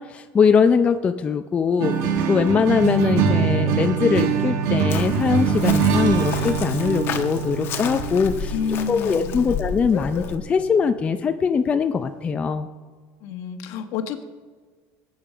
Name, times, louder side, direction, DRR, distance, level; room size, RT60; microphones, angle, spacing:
voice 1, 0.0-1.9 2.3-8.5 8.9-12.7, left 6 dB, 20° left, 7 dB, 0.5 m, -21 dB
sound 1, 1.8-10.5, right 6 dB, 65° right, 1.4 m, -23 dB
Chirp tweet, 4.9-10.4, left 7 dB, 40° left, 1.2 m, -32 dB
voice 2, 8.5-9.6 13.2-14.2, left 7 dB, 60° left, 8 dB, 1.3 m, -29 dB
20.5 x 8.8 x 5.0 m, 1.5 s
cardioid pair, 160°, 6 cm